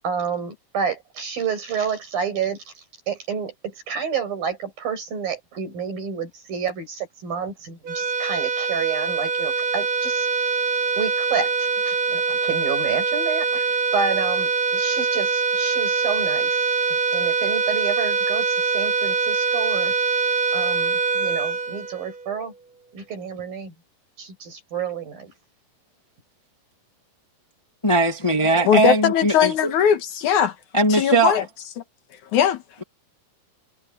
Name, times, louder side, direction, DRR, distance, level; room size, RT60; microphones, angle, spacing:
voice 1, 0.0-2.6 3.1-10.3 11.0-13.7 13.9-16.5 17.1-19.9 20.5-22.5 22.9-23.7 24.2-25.3, right 6 dB, 90° right, 9.0 m, -29 dB
sound 1, 7.8-22.4, right 4 dB, 70° right, 1.2 m, -23 dB
voice 2, 27.8-29.7 30.7-31.3, right 2 dB, 15° left, 1.2 m, -19 dB
voice 3, 28.7-30.5 30.9-31.4 32.3-32.6, left 8 dB, 65° left, 2.6 m, -19 dB
omnidirectional pair, 4.0 m